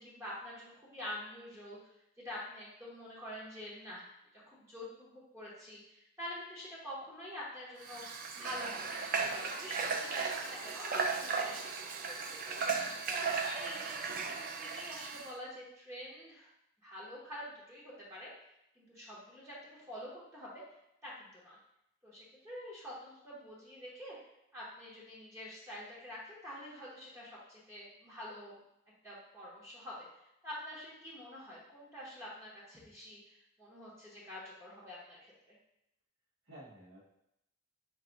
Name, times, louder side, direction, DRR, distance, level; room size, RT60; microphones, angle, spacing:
voice 1, 0.0-1.8 2.2-8.0 8.3-12.6 13.1-16.5 16.8-20.6 21.0-21.6 22.0-24.2 24.5-28.6 29.0-35.6, left 1 dB, 15° right, -7 dB, 0.9 m, -47 dB
Water / Water tap faucet, 7.8-15.3, right 4 dB, 45° right, 0.4 m, -36 dB
voice 2, 12.6-13.0 36.4-37.0, right 1 dB, 80° right, -7 dB, 1.7 m, -54 dB
4.6 x 2.7 x 3.9 m, 0.82 s
head